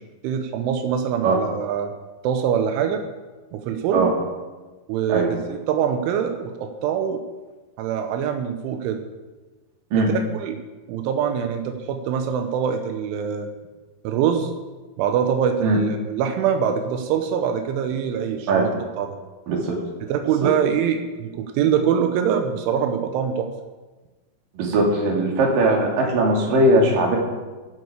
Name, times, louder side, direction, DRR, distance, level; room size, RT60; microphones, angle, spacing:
voice 1, 0.2-1.9 2.2-3.0 3.5-4.1 4.9-7.2 7.8-9.0 10.0-10.6 10.9-13.5 14.0-14.5 15.0-18.7 19.0-19.1 20.1-23.5, right 8 dB, 85° right, 6 dB, 3.4 m, -24 dB
voice 2, 19.5-19.8 20.4-20.5 24.6-27.2, right 2 dB, 50° right, -1 dB, 4.0 m, -19 dB
15.5 x 11.0 x 5.0 m, 1.3 s
omnidirectional pair, 5.4 m